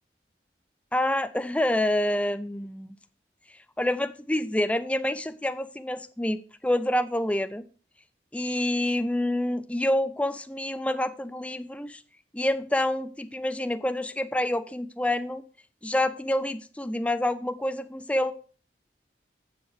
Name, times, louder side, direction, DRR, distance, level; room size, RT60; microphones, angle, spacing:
voice 1, 0.9-2.9 3.8-7.6 8.3-12.0 12.3-15.4 15.8-18.3, left 1 dB, 5° left, 12 dB, 0.4 m, -27 dB
7.7 x 7.2 x 4.7 m, 0.38 s
head